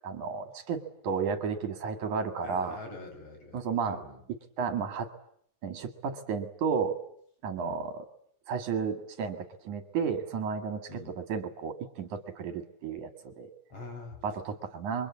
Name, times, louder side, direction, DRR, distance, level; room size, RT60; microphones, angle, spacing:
voice 1, 0.0-2.8 3.5-4.0 4.6-5.1 5.6-7.0 7.4-8.1 8.5-10.9 11.2-13.5 14.2-15.1, right 6 dB, 70° right, 8 dB, 3.4 m, -32 dB
voice 2, 2.4-4.2 7.6-7.8 10.9-11.2 13.7-14.2, left 2 dB, 45° left, 4 dB, 6.6 m, -44 dB
27.5 x 24.0 x 8.6 m, 0.65 s
omnidirectional pair, 3.7 m